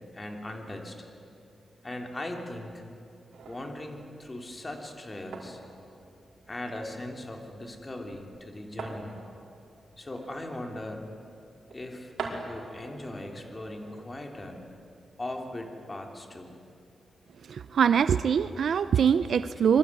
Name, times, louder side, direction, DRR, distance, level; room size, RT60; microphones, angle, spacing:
voice 1, 0.1-1.0 1.8-2.8 3.4-5.6 6.5-9.1 10.0-11.1 11.7-12.1 12.4-14.6 15.2-16.5, left 1 dB, 20° left, 3 dB, 3.2 m, -39 dB
sound 1, 3.3-15.2, right 3 dB, 90° right, 4.9 m, -46 dB
voice 2, 17.5-19.8, right 7 dB, 70° right, 13 dB, 0.6 m, -23 dB
26.0 x 23.0 x 9.7 m, 2.6 s
wide cardioid pair, 140°, 0 cm